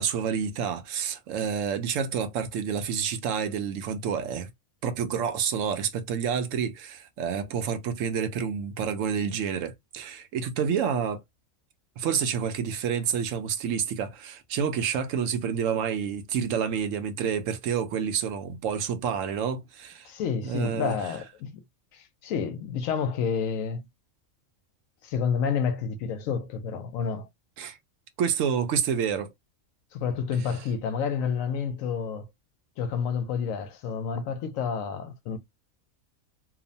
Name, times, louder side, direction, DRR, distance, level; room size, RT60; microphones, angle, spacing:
voice 1, 0.0-4.5 4.8-11.2 12.0-20.1 20.4-21.0 27.6-27.8 28.2-29.3, right 7 dB, 75° right, 0.9 m, -28 dB
voice 2, 20.0-21.6 21.9-23.9 25.0-27.3 29.9-32.3 32.8-35.4, left 6 dB, 80° left, 1.0 m, -29 dB
2.9 x 2.1 x 2.6 m
omnidirectional pair, 1.4 m